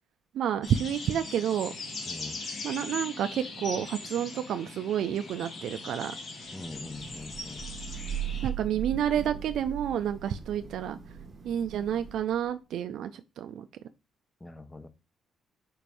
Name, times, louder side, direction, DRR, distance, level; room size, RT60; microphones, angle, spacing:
voice 1, 0.3-1.7 2.6-6.1 8.4-11.0 11.4-13.7, right 9 dB, 75° right, 9 dB, 0.3 m, -30 dB
sound 1, 0.6-8.5, left 3 dB, 55° left, 1.5 m, -40 dB
voice 2, 2.1-2.4 6.5-7.7 14.4-14.9, left 2 dB, 15° left, 12 dB, 0.6 m, -43 dB
Thunder / Rain, 6.7-12.5, right 9 dB, 40° right, 0.9 m, -39 dB
4.5 x 2.5 x 4.7 m, 0.27 s
cardioid pair, 90°, 0 cm